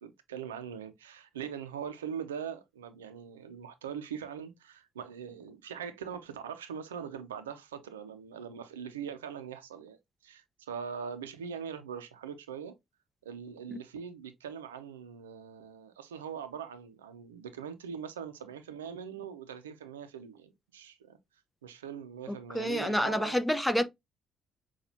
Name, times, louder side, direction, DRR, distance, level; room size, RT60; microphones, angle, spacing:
voice 1, 0.0-12.8 13.2-21.2 21.6-23.3, right 7 dB, 90° right, 0.5 m, -42 dB
voice 2, 22.3-23.8, equal, 10° left, 0.7 m, -28 dB
5.8 x 2.4 x 2.7 m
hypercardioid pair, 50°, 0 cm